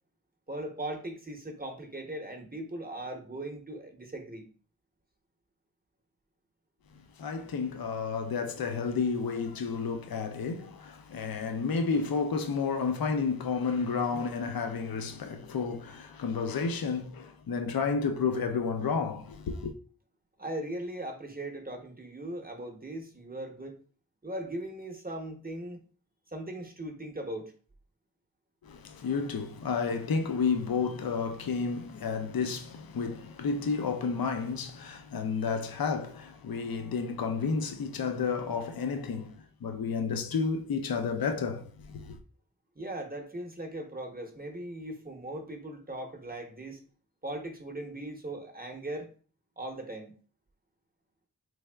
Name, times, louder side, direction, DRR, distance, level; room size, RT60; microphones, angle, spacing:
voice 1, 0.5-4.4 20.4-23.8 24.2-25.8 26.3-27.5 42.8-46.8 47.2-49.1 49.6-50.1, right 1 dB, 25° right, 0.7 m, -39 dB
voice 2, 7.2-19.7 28.6-39.3 39.6-42.2, left 5 dB, 70° left, 0.6 m, -31 dB
3.4 x 3.3 x 2.2 m
wide cardioid pair, 45°, 36 cm